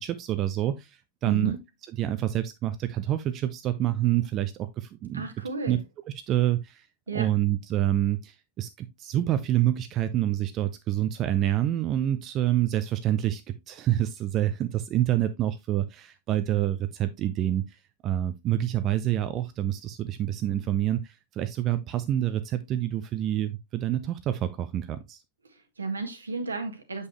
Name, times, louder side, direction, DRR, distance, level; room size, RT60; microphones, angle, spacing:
voice 1, 0.0-1.6 2.0-5.3 5.7-5.8 6.3-6.9 7.1-25.2, right 12 dB, 35° right, 0.6 m, -27 dB
voice 2, 1.2-1.6 5.1-5.8 7.1-7.3 25.4-27.1, right 4 dB, 75° right, 1.6 m, -33 dB
8.0 x 5.4 x 3.1 m
figure-of-eight pair, 90°, 0 cm